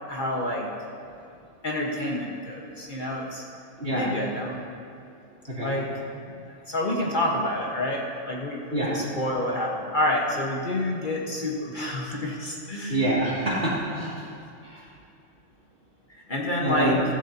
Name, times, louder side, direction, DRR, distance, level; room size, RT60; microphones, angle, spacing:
voice 1, 0.1-0.7 1.6-3.4 3.9-4.6 5.6-5.9 6.3-6.4 6.7-13.0 16.3-17.0, left 1 dB, 40° left, -2 dB, 1.4 m, -28 dB
voice 2, 3.8-4.1 5.5-5.8 8.7-9.0 12.9-14.1 14.6-14.8 16.6-17.0, right 1 dB, 55° right, -7 dB, 3.1 m, -26 dB
15.5 x 14.5 x 2.8 m, 2.5 s
omnidirectional pair, 1.3 m